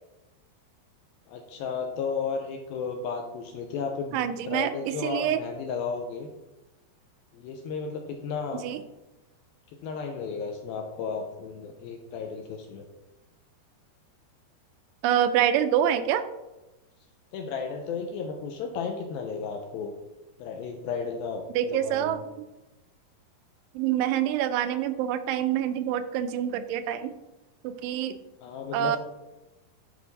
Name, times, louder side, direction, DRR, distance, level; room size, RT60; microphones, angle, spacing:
voice 1, 1.3-6.3 7.3-8.7 9.8-12.8 17.3-19.9 20.4-22.2 28.4-29.0, left 5 dB, 85° left, 3 dB, 2.2 m, -34 dB
voice 2, 4.1-5.4 8.6-8.8 15.0-16.2 21.6-22.2 23.8-27.1 27.6-28.2 28.7-29.0, right 10 dB, 85° right, 10 dB, 2.7 m, -26 dB
10.0 x 4.5 x 4.0 m, 1.0 s
omnidirectional pair, 4.8 m